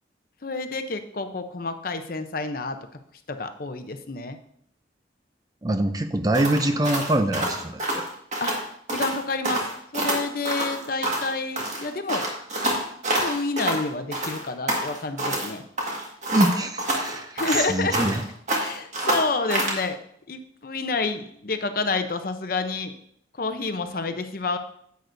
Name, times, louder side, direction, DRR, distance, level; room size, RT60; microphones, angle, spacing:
voice 1, 0.4-2.8 3.3-4.4 8.4-8.6 8.9-9.6 9.9-12.3 12.6-12.8 13.2-15.6 17.3-18.0 18.6-20.0 20.3-22.9 23.4-24.6, left 3 dB, 50° left, 8 dB, 0.7 m, -29 dB
voice 2, 5.6-8.0 16.3-18.2, right 1 dB, 20° right, 8 dB, 0.5 m, -24 dB
sound 1, 6.3-8.6 8.9-9.2 9.4-11.3 11.6-13.8 14.1-15.5 15.8-18.2 18.5-19.8, right 1 dB, 40° right, 1.7 m, -27 dB
10.5 x 8.2 x 2.6 m, 0.67 s
head